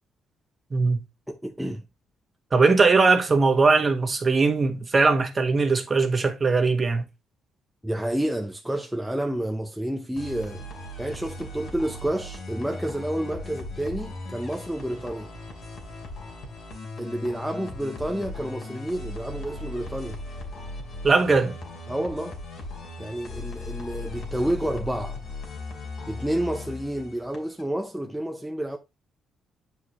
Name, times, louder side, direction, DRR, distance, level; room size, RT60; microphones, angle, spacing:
voice 1, 1.3-1.8 7.8-10.7 11.0-15.3 17.0-20.2 21.9-22.4 23.0-25.2 26.1-28.8, right 1 dB, 5° right, 0.7 m, -30 dB
voice 2, 2.5-7.0 21.0-21.6, right 4 dB, 30° right, 1.4 m, -20 dB
sound 1, 10.2-27.6, left 2 dB, 60° left, 2.5 m, -38 dB
8.1 x 5.0 x 3.0 m
cardioid pair, 90°, 0 cm